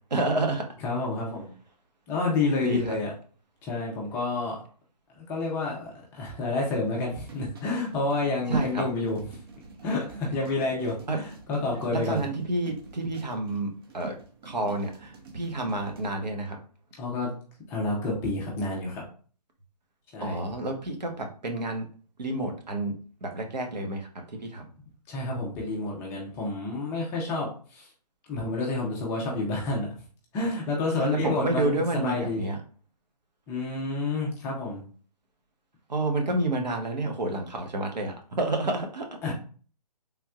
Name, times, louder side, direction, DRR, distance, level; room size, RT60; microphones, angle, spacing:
voice 1, 0.1-0.7 2.6-2.9 8.5-8.8 11.1-11.2 11.9-14.2 14.4-16.6 20.2-21.9 22.2-22.9 23.2-24.7 31.0-32.6 35.9-39.1, right 2 dB, 90° right, 3 dB, 1.0 m, -29 dB
voice 2, 0.8-1.5 2.1-3.1 3.6-4.6 5.1-9.2 9.8-12.2 17.0-17.3 17.7-19.0 20.1-20.4 25.1-27.9 28.3-29.9 30.3-32.5 33.5-34.8 39.2-39.3, left 3 dB, 10° left, -2 dB, 0.5 m, -29 dB
sound 1, 6.8-16.1, right 2 dB, 35° right, 0.5 m, -41 dB
3.5 x 2.9 x 2.3 m, 0.42 s
hypercardioid pair, 150°, 21 cm